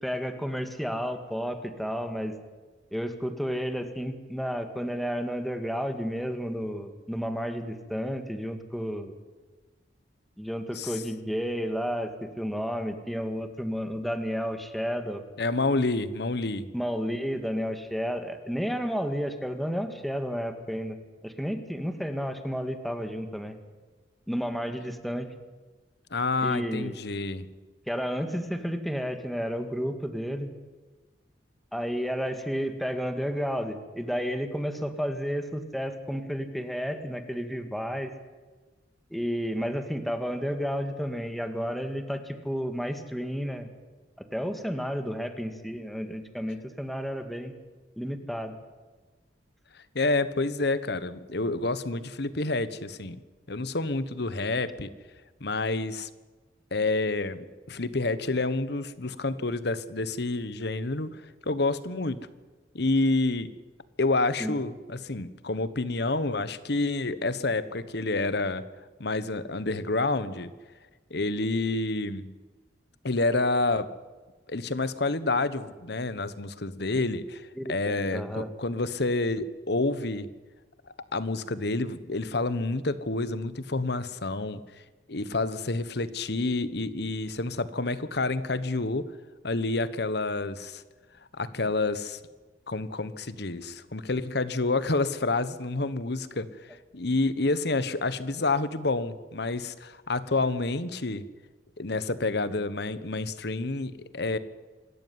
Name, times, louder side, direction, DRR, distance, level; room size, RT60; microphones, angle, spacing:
voice 1, 0.0-2.4 2.9-9.1 10.4-15.2 16.7-23.6 24.3-25.3 26.4-27.0 27.9-30.5 31.7-38.1 39.1-43.7 44.2-47.5 48.0-48.6 64.4-64.6 77.6-78.5, equal, ahead, 7 dB, 1.9 m, -31 dB
voice 2, 15.4-16.7 26.1-27.5 49.9-53.2 53.5-54.9 55.4-56.1 56.7-61.1 61.4-62.2 62.7-63.5 64.0-68.6 69.0-70.5 71.1-72.3 73.0-73.9 74.5-80.3 81.1-84.6 85.1-89.0 89.4-90.8 91.3-92.2 92.7-101.2 101.8-104.4, left 2 dB, 65° left, 14 dB, 1.3 m, -28 dB
26.0 x 13.5 x 9.5 m, 1.3 s
head